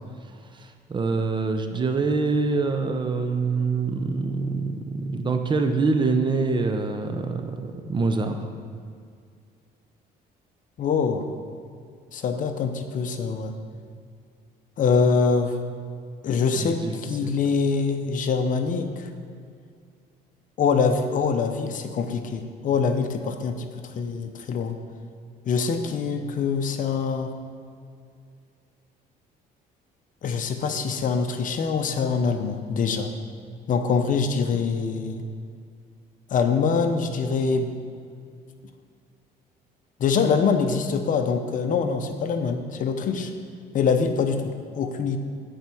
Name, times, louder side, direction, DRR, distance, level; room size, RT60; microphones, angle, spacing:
voice 1, 0.5-8.5 16.6-17.0 17.2-17.4 34.5-34.6, right 4 dB, 25° right, 6 dB, 0.7 m, -25 dB
voice 2, 10.8-11.3 12.1-13.5 14.8-15.6 16.2-19.1 20.6-24.7 25.5-27.3 30.2-33.1 33.7-35.2 36.3-37.7 40.0-43.3 43.7-45.2, left 5 dB, 50° left, 7 dB, 0.8 m, -24 dB
9.1 x 4.6 x 7.0 m, 2.2 s
cardioid pair, 110°, 17 cm